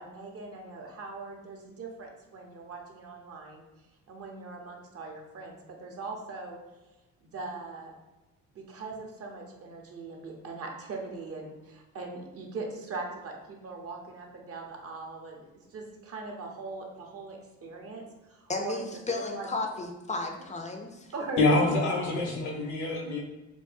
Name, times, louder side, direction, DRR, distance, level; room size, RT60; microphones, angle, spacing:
voice 1, 0.0-3.6 4.1-6.6 7.2-7.9 8.5-18.0 18.3-18.8 19.1-19.5 21.1-21.7, right 3 dB, 50° right, 1 dB, 0.8 m, -40 dB
voice 2, 18.5-21.1, left 3 dB, 25° left, 3 dB, 0.4 m, -34 dB
voice 3, 21.4-23.2, left 2 dB, 75° left, 2 dB, 0.9 m, -25 dB
4.6 x 2.2 x 2.6 m, 1.1 s
cardioid pair, 90°, 30 cm